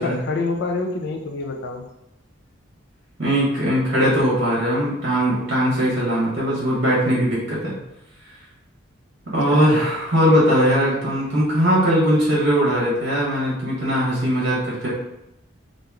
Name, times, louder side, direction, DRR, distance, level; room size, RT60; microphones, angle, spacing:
voice 1, 0.0-1.9 9.5-9.7, left 3 dB, 55° left, 4 dB, 0.4 m, -26 dB
voice 2, 3.2-7.8 9.3-14.9, equal, 60° right, -5 dB, 1.1 m, -20 dB
2.9 x 2.6 x 3.5 m, 0.87 s
head